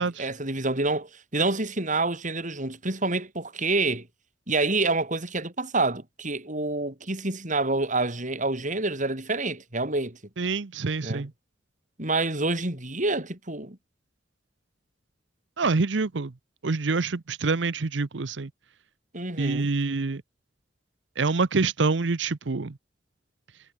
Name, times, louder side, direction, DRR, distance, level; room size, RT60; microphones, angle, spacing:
voice 1, 0.0-4.1 4.5-10.2 11.0-11.3 12.0-13.8 19.1-19.7, right 2 dB, 45° right, 6.5 m, -27 dB
voice 2, 10.4-11.3 15.6-16.3 16.6-18.5 19.4-20.2 21.2-22.8, right 4 dB, 90° right, 0.8 m, -26 dB
head